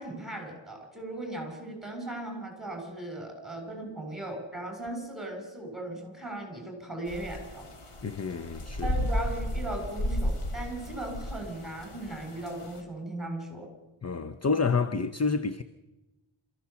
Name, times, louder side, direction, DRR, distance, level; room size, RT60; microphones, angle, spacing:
voice 1, 0.0-7.7 8.8-13.7, right 1 dB, ahead, 7.1 m, -37 dB
sound 1, 7.1-12.8, equal, 85° left, 2.7 m, -34 dB
voice 2, 8.0-8.9 14.0-15.6, left 4 dB, 30° left, 0.8 m, -28 dB
28.0 x 15.0 x 7.0 m
wide cardioid pair, 85°, 50 cm